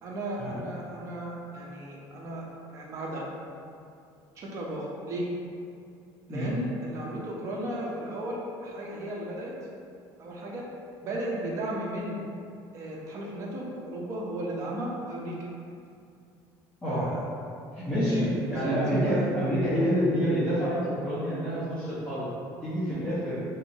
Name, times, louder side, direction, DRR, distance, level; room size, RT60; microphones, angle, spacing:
voice 1, 0.0-2.4 2.7-3.2 4.4-5.3 6.3-9.6 10.2-10.7 11.0-12.2 12.7-15.4 16.8-17.2 18.0-18.8 19.0-19.3, right 1 dB, 35° right, -3 dB, 0.5 m, -35 dB
voice 2, 17.7-22.3 22.6-23.4, equal, 10° left, -13 dB, 0.6 m, -27 dB
3.0 x 2.7 x 2.7 m, 2.4 s
cardioid pair, 170°, 9 cm